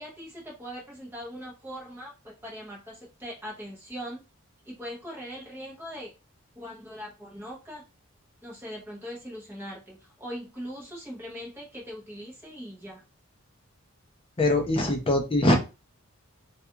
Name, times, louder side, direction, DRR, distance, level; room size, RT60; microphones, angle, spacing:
voice 1, 0.0-4.2 4.6-6.1 6.6-7.8 8.4-13.0 14.8-14.9, equal, 10° right, -3 dB, 0.7 m, -40 dB
voice 2, 14.4-15.5, left 1 dB, 25° left, 2 dB, 0.5 m, -22 dB
2.3 x 2.3 x 2.7 m, 0.29 s
head